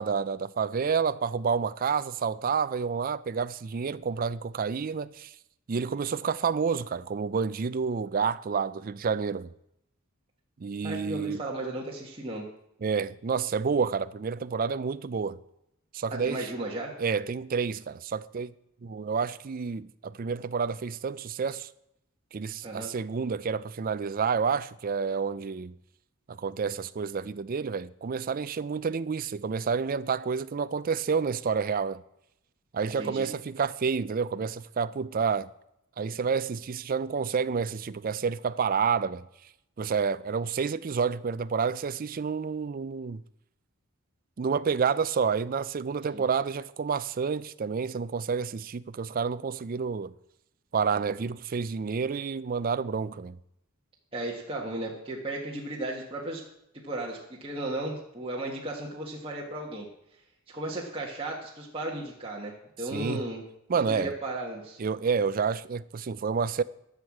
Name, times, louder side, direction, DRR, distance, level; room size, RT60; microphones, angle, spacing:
voice 1, 0.0-5.3 5.7-9.5 10.6-11.4 12.8-15.4 15.9-16.5 17.0-18.5 18.8-21.7 22.3-25.7 26.3-32.0 32.7-35.5 36.0-39.2 39.8-43.2 44.4-50.1 50.7-53.4 62.9-63.2 63.7-64.1 64.8-66.6, right 5 dB, 40° right, 0.4 m, -29 dB
voice 2, 10.8-12.4 16.2-16.9 22.6-22.9 33.0-33.3 46.1-46.2 54.1-56.4 56.8-59.9 60.5-63.4 63.7-64.8, right 1 dB, 25° right, 1.5 m, -35 dB
12.5 x 6.5 x 7.3 m
head